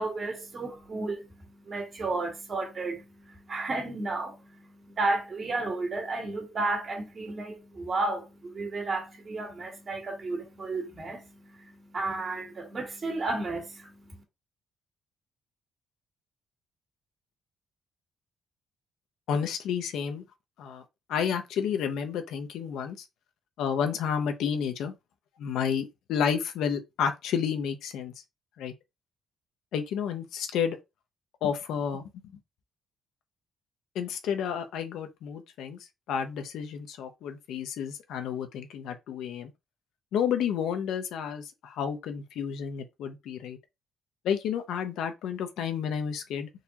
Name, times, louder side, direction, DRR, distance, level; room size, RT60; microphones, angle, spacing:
voice 1, 0.0-14.2, right 3 dB, 45° right, 1.6 m, -33 dB
voice 2, 19.3-20.2 20.6-20.8 21.1-23.0 23.6-24.9 25.4-28.1 28.6-28.7 29.7-30.8 31.4-32.0 33.9-35.8 36.1-39.5 40.1-43.6 44.2-46.5, left 7 dB, 85° left, 0.6 m, -31 dB
3.9 x 2.7 x 2.9 m
cardioid pair, 90°, 0 cm